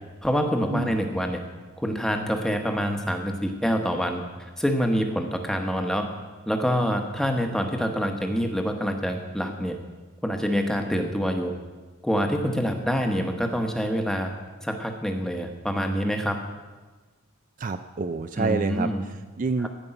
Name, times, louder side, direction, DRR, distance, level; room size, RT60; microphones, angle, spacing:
voice 1, 0.2-1.4 1.8-4.2 4.6-6.1 6.5-9.8 10.2-11.5 12.0-14.3 14.6-16.4 18.4-19.0 19.6-19.7, equal, 5° left, 4 dB, 1.0 m, -26 dB
voice 2, 17.6-19.7, right 4 dB, 40° right, 8 dB, 0.4 m, -28 dB
15.5 x 5.4 x 8.9 m, 1.3 s
head